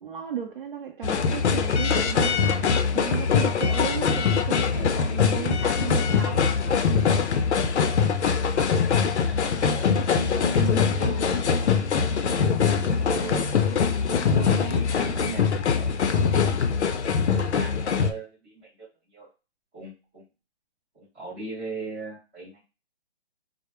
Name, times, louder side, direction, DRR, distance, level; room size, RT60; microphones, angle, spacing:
voice 1, 0.0-6.5, right 9 dB, 50° right, 0.6 m, -35 dB
sound 1, 1.0-18.1, left 6 dB, 85° left, 0.5 m, -23 dB
voice 2, 9.7-12.4 12.9-13.4 14.1-15.5 15.8-16.3 16.9-18.5 19.1-19.3 19.7-20.2 20.9-22.6, right 3 dB, 10° right, 0.6 m, -37 dB
2.2 x 2.0 x 2.9 m
hypercardioid pair, 165°, 33 cm